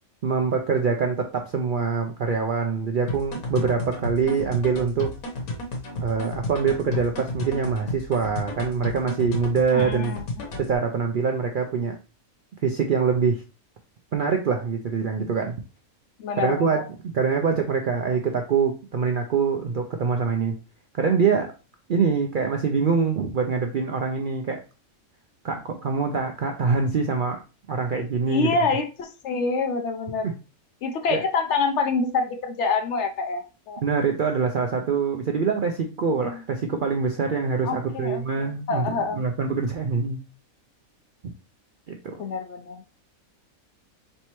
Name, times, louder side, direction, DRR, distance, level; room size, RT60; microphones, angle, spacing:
voice 1, 0.2-5.1 6.0-10.1 10.6-12.0 12.6-13.4 14.1-15.6 16.4-20.6 21.0-21.5 21.9-24.6 25.4-27.4 27.7-28.5 30.2-30.3 31.1-31.2 33.8-40.2 41.9-42.2, right 5 dB, 75° right, 4 dB, 0.4 m, -24 dB
sound 1, 3.1-10.7, left 1 dB, 85° left, 1.4 m, -32 dB
voice 2, 9.7-10.2 16.2-16.8 28.3-30.3 30.8-33.8 37.6-39.2 42.2-42.8, left 4 dB, 65° left, 6 dB, 0.8 m, -26 dB
4.2 x 3.3 x 3.0 m, 0.31 s
omnidirectional pair, 1.5 m